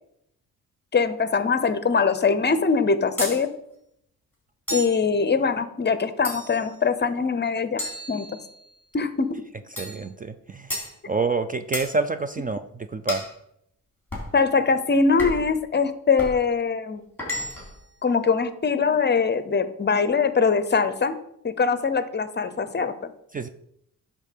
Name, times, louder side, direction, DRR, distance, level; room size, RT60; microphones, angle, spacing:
voice 1, 0.9-3.5 4.7-7.8 8.1-8.3 8.9-9.3 14.3-17.1 18.0-21.2 21.4-23.1, left 5 dB, 30° left, 12 dB, 0.7 m, -22 dB
sound 1, 3.2-3.4 4.7-5.0 6.2-6.7 7.8-8.7 9.8-10.0 10.7-10.9 11.7-11.9 13.1-13.3 14.1-14.3 15.2-15.5 16.2-16.4 17.2-17.8, left 1 dB, 5° left, 3.5 m, -32 dB
voice 2, 9.8-10.7 11.1-13.2 23.3-23.5, right 3 dB, 25° right, 10 dB, 0.4 m, -27 dB
10.0 x 3.7 x 6.7 m, 0.74 s
cardioid pair, 105°, 35 cm